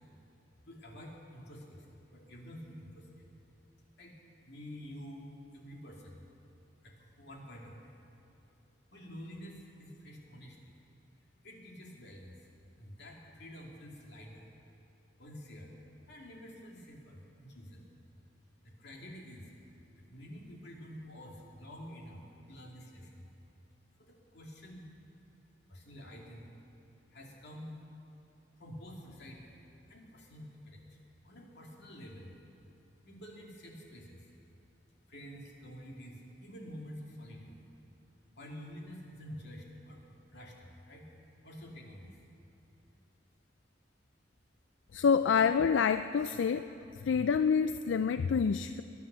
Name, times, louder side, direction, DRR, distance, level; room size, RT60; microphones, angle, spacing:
voice 1, 0.6-1.9 2.1-3.3 4.0-4.1 4.5-6.2 6.8-8.0 8.9-10.8 11.4-12.4 12.8-14.4 15.2-15.7 16.1-17.9 18.6-19.5 20.0-23.3 24.0-24.8 25.7-26.4 27.1-27.7 28.6-29.6 29.9-31.0 31.2-32.3 33.0-34.3 35.1-37.6 38.4-40.0 40.3-41.1 41.4-42.2, equal, 65° left, -1 dB, 2.5 m, -49 dB
voice 2, 44.9-46.7 46.9-48.8, left 6 dB, 85° left, 11 dB, 0.4 m, -27 dB
21.5 x 9.7 x 6.8 m, 2.9 s
head